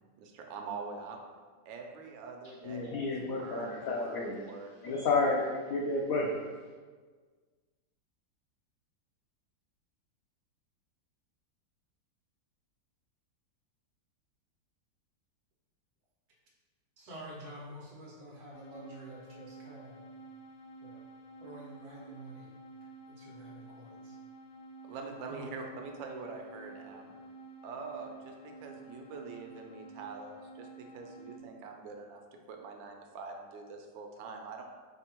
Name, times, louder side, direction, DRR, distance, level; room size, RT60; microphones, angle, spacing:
voice 1, 0.2-1.2 1.7-5.1 24.8-27.1 27.6-30.7 30.9-32.2 32.5-34.6, right 4 dB, 90° right, 3 dB, 1.4 m, -44 dB
voice 2, 2.6-4.4 4.8-6.3, left 3 dB, 85° left, -2 dB, 0.7 m, -31 dB
voice 3, 17.0-20.0 20.8-21.0 21.4-22.5 23.1-24.2 25.3-25.5, right 1 dB, 60° right, -4 dB, 1.4 m, -48 dB
sound 1, 18.5-31.4, right 2 dB, 70° left, 1.0 m, -51 dB
3.5 x 3.4 x 4.3 m, 1.5 s
omnidirectional pair, 2.0 m